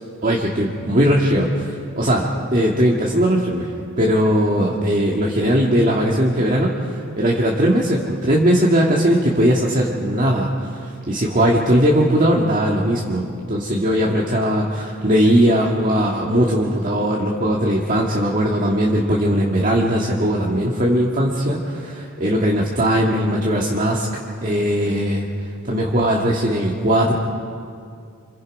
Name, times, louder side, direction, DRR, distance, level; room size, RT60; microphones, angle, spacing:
voice 1, 0.2-3.7 4.0-24.1 24.4-25.3 25.7-27.1, equal, 35° right, -2 dB, 1.9 m, -19 dB
28.0 x 27.0 x 5.3 m, 2.4 s
head